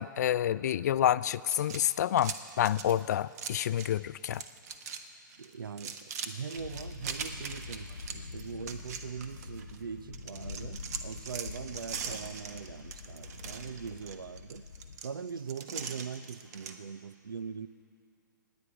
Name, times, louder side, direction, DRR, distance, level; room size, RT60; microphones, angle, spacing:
voice 1, 0.0-4.4, left 11 dB, 55° left, 18 dB, 0.4 m, -28 dB
sound 1, 1.4-4.0 4.3-5.0 5.3-9.8 10.1-16.8, right 6 dB, 50° right, 1.2 m, -41 dB
voice 2, 5.4-14.6 15.0-17.7, right 6 dB, 85° right, 15 dB, 0.7 m, -41 dB
sound 2, 6.6-15.0, left 4 dB, 90° left, 1.2 m, -45 dB
27.0 x 9.7 x 4.9 m, 2.5 s
hypercardioid pair, 135°, 11 cm